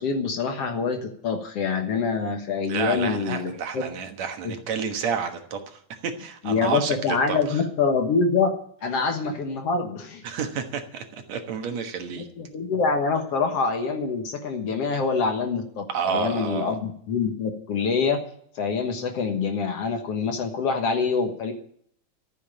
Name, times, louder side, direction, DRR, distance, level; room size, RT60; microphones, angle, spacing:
voice 1, 0.0-3.8 4.4-4.5 6.4-10.2 12.2-18.2 18.6-21.5, left 5 dB, 55° left, 5 dB, 2.3 m, -25 dB
voice 2, 2.7-7.4 10.2-12.3 15.9-16.8, right 6 dB, 65° right, 5 dB, 2.5 m, -30 dB
14.0 x 7.4 x 9.9 m, 0.65 s
omnidirectional pair, 3.5 m